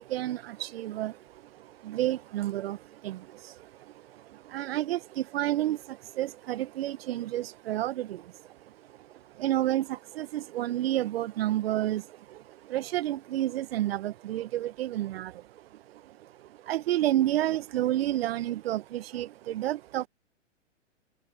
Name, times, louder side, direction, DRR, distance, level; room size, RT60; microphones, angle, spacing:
voice 1, 0.0-9.1 9.3-20.1, right 14 dB, 50° right, 1.2 m, -31 dB
hypercardioid pair, 120°, 37 cm